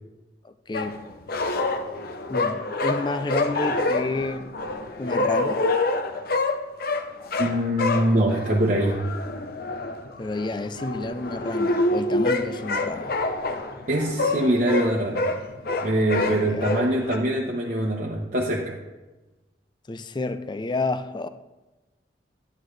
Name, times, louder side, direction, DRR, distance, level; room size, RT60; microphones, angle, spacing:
voice 1, 0.4-1.0 2.3-4.5 5.0-5.6 10.2-13.2 16.3-16.8 19.9-21.3, left 2 dB, 25° left, 0.5 m, -30 dB
sound 1, 0.7-17.2, left 2 dB, 55° left, 0.8 m, -27 dB
voice 2, 7.4-9.0 13.9-15.3 15.8-18.8, right 1 dB, 45° right, 1.0 m, -23 dB
11.0 x 9.5 x 3.2 m
head